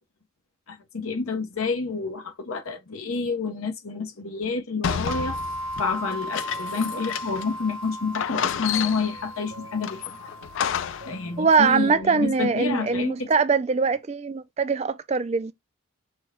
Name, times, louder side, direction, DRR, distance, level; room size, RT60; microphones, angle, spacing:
voice 1, 0.7-5.4 5.8-10.0 11.0-13.3, left 4 dB, 90° left, 0.9 m, -29 dB
sound 1, 4.8-7.6 7.8-7.9 8.1-9.2 9.8-11.2, left 8 dB, 65° left, 0.3 m, -30 dB
sound 2, 5.1-11.6, equal, 75° right, 1.1 m, -36 dB
sound 3, 6.5-13.0, left 1 dB, 55° right, 0.9 m, -49 dB
voice 2, 11.4-15.5, right 5 dB, 30° right, 0.3 m, -22 dB
6.1 x 2.2 x 3.6 m
head